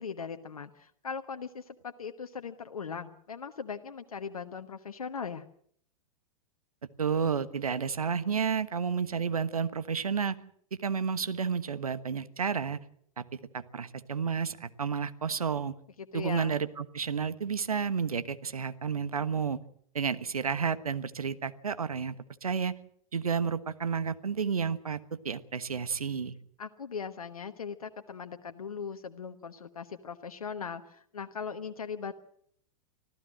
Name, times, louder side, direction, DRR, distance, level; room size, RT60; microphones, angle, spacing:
voice 1, 0.0-5.4 16.0-16.6 26.6-32.1, left 6 dB, 80° left, 7 dB, 1.3 m, -39 dB
voice 2, 7.0-10.4 10.8-12.8 13.2-13.3 13.5-15.7 16.1-19.6 19.9-22.1 22.4-22.7 23.1-25.0 25.2-26.3, right 6 dB, 80° right, 13 dB, 1.2 m, -31 dB
25.0 x 15.0 x 7.7 m, 0.65 s
figure-of-eight pair, 100°, 18 cm